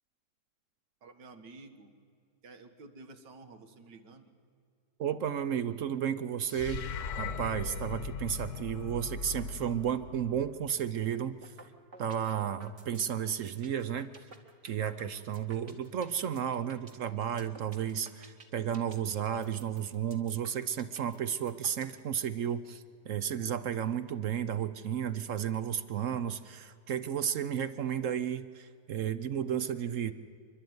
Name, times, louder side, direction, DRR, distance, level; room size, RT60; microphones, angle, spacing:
voice 1, 1.0-1.9 2.4-4.3, right 3 dB, 80° right, 7 dB, 2.1 m, -51 dB
voice 2, 5.0-6.9 7.2-11.5 12.0-14.1 14.6-30.1, right 9 dB, 60° right, 13 dB, 0.9 m, -33 dB
sound 1, 6.5-10.8, left 5 dB, 50° left, 1.2 m, -39 dB
sound 2, 11.4-11.6 11.9-22.0, right 3 dB, 45° right, 2.1 m, -52 dB
27.0 x 12.0 x 9.5 m, 2.4 s
omnidirectional pair, 1.8 m